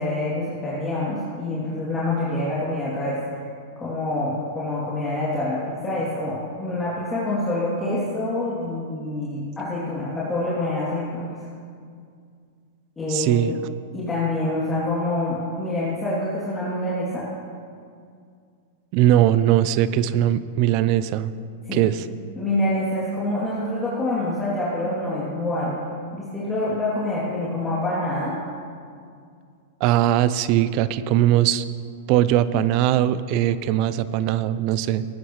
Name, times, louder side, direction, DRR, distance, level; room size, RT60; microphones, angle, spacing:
voice 1, 0.0-3.4 3.8-11.3 13.0-13.6 13.9-17.3 21.7-21.8 22.3-25.8 26.1-28.4, left 1 dB, 15° left, -9 dB, 2.9 m, -26 dB
voice 2, 13.1-13.5 18.9-21.3 21.7-22.0 29.8-31.6 32.1-35.1, right 12 dB, 50° right, 15 dB, 0.5 m, -20 dB
18.5 x 9.9 x 3.2 m, 2.2 s
hypercardioid pair, 110°, 0 cm